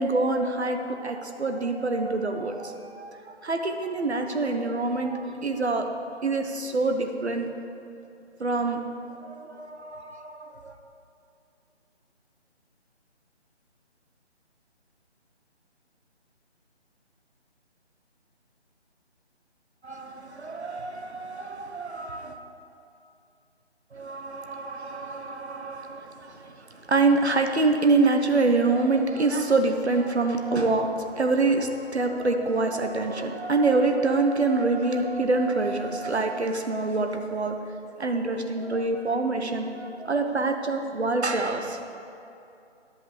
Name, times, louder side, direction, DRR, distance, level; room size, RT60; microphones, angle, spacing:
voice 1, 0.0-5.8 6.2-7.5 8.4-8.9 9.2-10.7 19.8-22.4 23.9-37.6 38.0-41.8, right 3 dB, 70° right, 5 dB, 1.1 m, -26 dB
11.0 x 5.5 x 7.0 m, 2.7 s
figure-of-eight pair, 155°, 34 cm